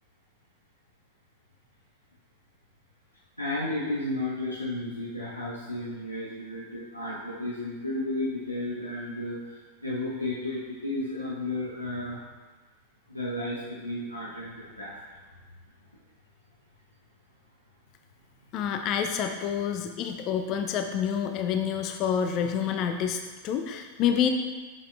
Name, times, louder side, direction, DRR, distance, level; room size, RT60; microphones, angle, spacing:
voice 1, 3.4-12.2 13.1-15.0, left 1 dB, 85° left, -6 dB, 0.8 m, -33 dB
voice 2, 18.5-24.3, left 8 dB, 40° left, 6 dB, 0.4 m, -28 dB
7.4 x 6.4 x 2.3 m, 1.4 s
figure-of-eight pair, 90°, 0 cm